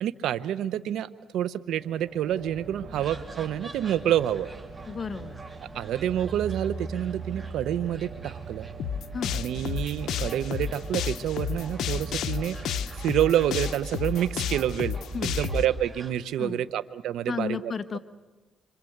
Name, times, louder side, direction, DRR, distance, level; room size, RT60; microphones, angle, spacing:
voice 1, 0.0-4.5 5.7-8.7 9.3-12.6 13.0-15.0 15.2-17.7, right 11 dB, 80° right, 14 dB, 0.9 m, -28 dB
sound 1, 1.7-13.6, right 3 dB, 35° right, 6.2 m, -45 dB
sound 2, 2.9-16.1, right 5 dB, 20° right, 3.1 m, -42 dB
voice 2, 4.9-5.4 9.1-9.4 15.1-15.4 16.4-16.6 17.3-18.0, left 6 dB, 40° left, 11 dB, 1.3 m, -33 dB
sound 3, 8.8-15.6, left 8 dB, 75° left, 1.0 m, -31 dB
26.5 x 26.0 x 8.0 m, 1.2 s
cardioid pair, 90°, 0 cm